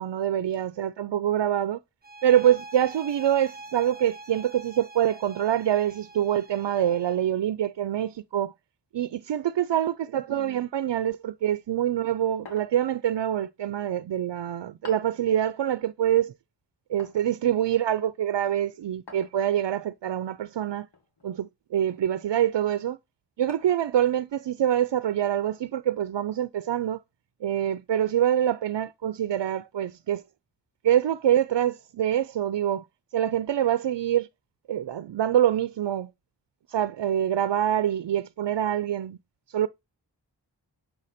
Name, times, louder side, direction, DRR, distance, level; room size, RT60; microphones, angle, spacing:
voice 1, 0.0-1.8 2.2-8.5 8.9-16.3 16.9-20.9 21.2-23.0 23.4-27.0 27.4-30.2 30.8-32.8 33.1-34.3 34.7-36.1 36.7-39.2 39.5-39.7, right 10 dB, 85° right, 0.5 m, -25 dB
sound 1, 2.0-7.3, right 2 dB, 25° right, 0.8 m, -45 dB
sound 2, 12.4-13.0 14.8-15.2 17.0-17.3 19.1-19.4 20.9-21.3 21.9-22.1 23.5-23.9, left 4 dB, 80° left, 2.1 m, -47 dB
8.0 x 6.4 x 4.2 m
wide cardioid pair, 75°, 42 cm